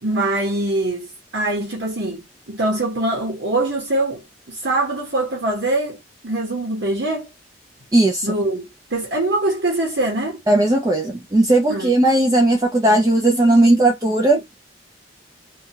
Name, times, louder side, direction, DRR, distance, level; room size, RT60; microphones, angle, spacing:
voice 1, 0.0-4.2 4.5-6.0 6.2-7.3 8.2-10.4 11.7-12.0, right 2 dB, 75° right, 1.0 m, -23 dB
voice 2, 7.9-8.3 10.5-14.6, right 1 dB, 20° right, 0.5 m, -16 dB
2.6 x 2.3 x 2.9 m
head